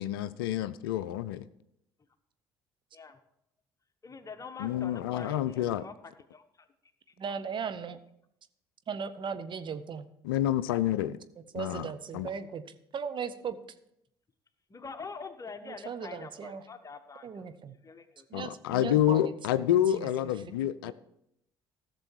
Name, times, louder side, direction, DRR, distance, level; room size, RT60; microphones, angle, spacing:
voice 1, 0.0-1.4 4.6-5.9 10.2-11.2 11.6-11.9 12.1-12.3 18.3-20.9, left 12 dB, 75° left, 15 dB, 0.4 m, -28 dB
voice 2, 4.0-5.9 6.3-6.7 7.2-7.3 14.7-17.6 17.8-18.3, left 4 dB, 30° left, 8 dB, 1.2 m, -45 dB
voice 3, 7.2-8.0 8.9-10.1 11.5-13.6 15.6-16.7 17.2-17.7 18.3-20.1 20.6-20.9, right 6 dB, 40° right, 10 dB, 0.9 m, -38 dB
15.0 x 6.8 x 4.6 m, 0.78 s
figure-of-eight pair, 55°, 12 cm